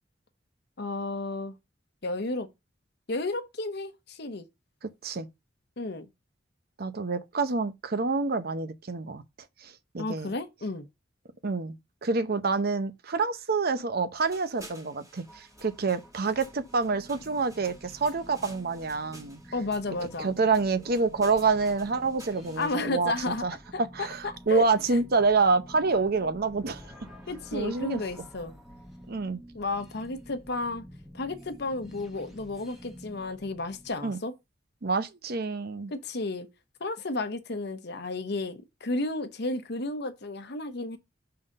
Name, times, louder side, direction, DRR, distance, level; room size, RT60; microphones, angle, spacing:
voice 1, 0.8-1.6 2.0-2.5 3.1-4.5 5.8-6.1 10.0-10.9 19.5-20.3 22.6-23.4 23.7-25.0 27.3-28.5 29.5-30.8 31.1-34.3 35.9-36.5 36.8-41.0, left 2 dB, 60° left, 0.9 m, -32 dB
voice 2, 4.8-5.3 6.8-9.2 9.6-10.3 11.4-11.8 12.0-19.4 20.2-23.1 23.4-23.6 23.9-26.8 27.5-28.0 29.1-29.4 34.0-34.2 34.8-35.9, right 4 dB, 55° right, 0.8 m, -27 dB
sound 1, 14.2-22.8, right 1 dB, 20° right, 2.2 m, -52 dB
sound 2, 15.1-33.9, equal, ahead, 1.4 m, -49 dB
5.7 x 3.8 x 5.4 m
head